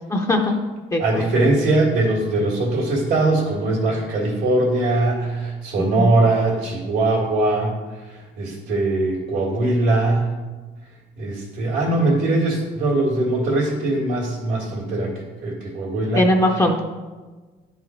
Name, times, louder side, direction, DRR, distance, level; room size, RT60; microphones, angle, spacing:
voice 1, 0.1-0.5 0.9-1.3 5.8-6.1 16.1-16.8, left 1 dB, 20° left, 1 dB, 0.7 m, -20 dB
voice 2, 1.0-10.3 11.2-15.1 15.4-16.3, right 2 dB, 80° right, -6 dB, 1.9 m, -21 dB
10.5 x 4.1 x 4.4 m, 1.3 s
cardioid pair, 110°, 17 cm